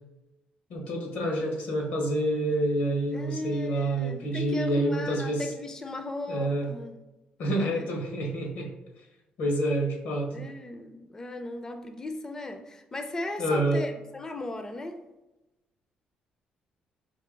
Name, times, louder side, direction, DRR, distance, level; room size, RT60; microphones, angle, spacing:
voice 1, 0.7-5.5 6.3-6.7 7.4-8.7 9.4-10.5 13.4-13.8, right 1 dB, 85° left, 1.4 m, -28 dB
voice 2, 3.1-6.9 7.5-7.8 10.3-15.0, left 2 dB, 20° left, 0.4 m, -37 dB
4.7 x 3.0 x 3.7 m
cardioid pair, 110°, 3 cm